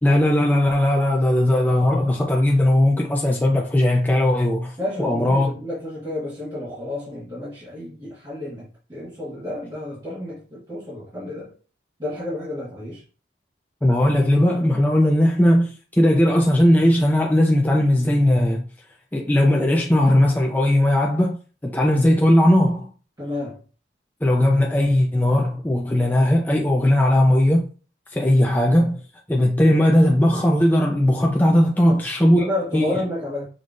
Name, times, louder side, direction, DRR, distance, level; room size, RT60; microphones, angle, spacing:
voice 1, 0.0-5.5 13.8-18.6 19.1-22.9 24.2-27.7 28.1-29.0 29.3-32.4 32.7-32.9, left 1 dB, 10° left, 0.4 m, -18 dB
voice 2, 4.8-11.5 12.0-13.0 23.2-23.6 31.8-33.5, left 1 dB, 20° right, 1.5 m, -31 dB
5.2 x 3.1 x 2.6 m
head